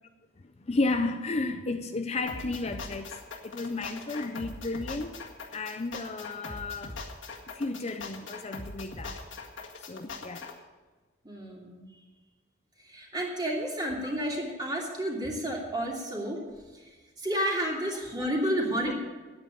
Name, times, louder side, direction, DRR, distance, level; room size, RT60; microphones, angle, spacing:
voice 1, 0.6-3.2 3.4-5.2 5.5-7.0 7.5-9.2 9.8-10.5 14.0-14.2 18.8-18.9, left 3 dB, 35° left, 7 dB, 0.5 m, -33 dB
sound 1, 2.3-10.5, left 3 dB, 85° left, 1.9 m, -41 dB
voice 2, 11.2-11.9 12.8-16.4 16.7-16.9 17.2-18.9, equal, 25° right, -2 dB, 2.8 m, -31 dB
9.7 x 9.1 x 8.6 m, 1.3 s
head